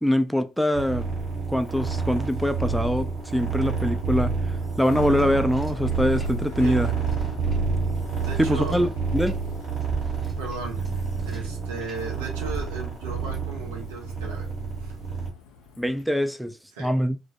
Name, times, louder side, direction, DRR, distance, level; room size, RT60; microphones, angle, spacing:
voice 1, 0.0-1.1 1.5-4.4 4.8-6.9 8.4-9.3 15.8-17.2, equal, ahead, 0.3 m, -24 dB
sound 1, 0.7-15.3, right 5 dB, 65° right, 1.0 m, -29 dB
Bicycle, 1.2-16.0, left 5 dB, 80° left, 0.4 m, -43 dB
sound 2, 4.5-6.7 7.0-12.0 12.5-13.1, right 1 dB, 15° right, 0.7 m, -42 dB
voice 2, 8.2-8.8 10.4-14.5 14.8-14.9 16.7-16.9, right 3 dB, 85° right, 0.7 m, -36 dB
2.2 x 2.1 x 2.7 m
hypercardioid pair, 50°, 0 cm